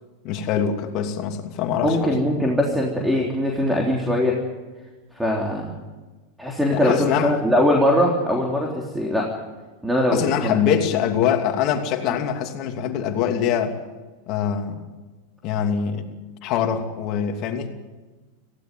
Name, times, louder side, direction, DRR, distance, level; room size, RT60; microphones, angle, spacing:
voice 1, 0.2-2.1 6.7-7.3 10.1-13.8 14.3-14.8 15.4-17.7, left 8 dB, 50° left, 5 dB, 2.7 m, -24 dB
voice 2, 1.8-4.4 5.1-5.8 6.4-9.3 9.8-10.6 12.1-12.2, left 1 dB, 5° right, -1 dB, 3.5 m, -21 dB
18.5 x 16.0 x 9.4 m, 1.2 s
hypercardioid pair, 100°, 0 cm